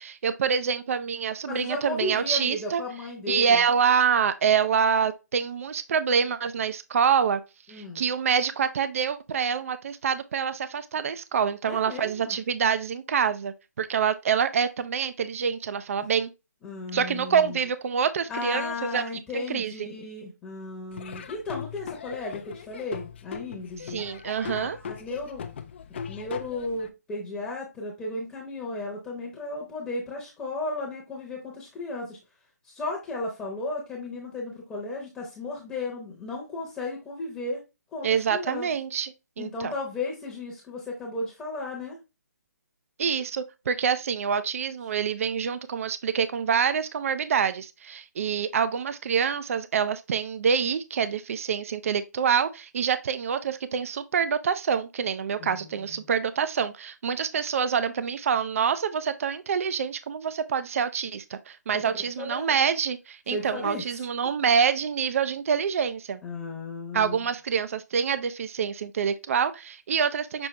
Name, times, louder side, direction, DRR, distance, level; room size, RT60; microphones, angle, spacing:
voice 1, 0.0-2.8 3.3-7.4 7.7-16.3 16.9-19.0 19.3-19.9 23.9-24.8 38.0-39.7 43.0-66.2 66.9-70.5, right 7 dB, 50° right, 0.4 m, -26 dB
voice 2, 1.4-3.6 7.7-8.0 11.7-12.4 16.6-17.6 18.3-24.0 24.6-25.4 26.1-32.2 32.6-37.6 37.9-38.7 39.4-42.0 55.4-56.0 61.7-61.8 62.2-62.6 63.3-64.1 66.2-67.2, left 2 dB, 10° left, 0.8 m, -35 dB
Laughter / Drum, 20.9-26.9, left 7 dB, 40° left, 0.4 m, -39 dB
6.1 x 2.7 x 3.1 m
hypercardioid pair, 160°, 10 cm